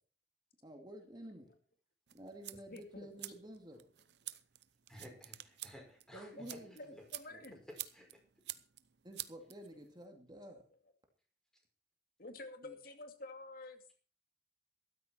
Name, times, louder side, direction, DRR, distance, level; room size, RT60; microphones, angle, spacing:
voice 1, 0.6-1.5 2.1-3.8 6.1-7.0 7.3-7.5 9.0-10.6 12.6-12.8, right 1 dB, 25° right, 4 dB, 2.4 m, -51 dB
sound 1, 2.1-10.0, right 15 dB, 70° right, 0.8 m, -50 dB
voice 2, 2.7-3.1 6.1-6.2 6.5-7.6 12.2-13.8, left 2 dB, 55° left, 6 dB, 2.5 m, -49 dB
voice 3, 4.9-6.5 7.7-8.2, equal, 5° left, 1 dB, 5.7 m, -54 dB
14.0 x 13.0 x 4.4 m, 0.38 s
head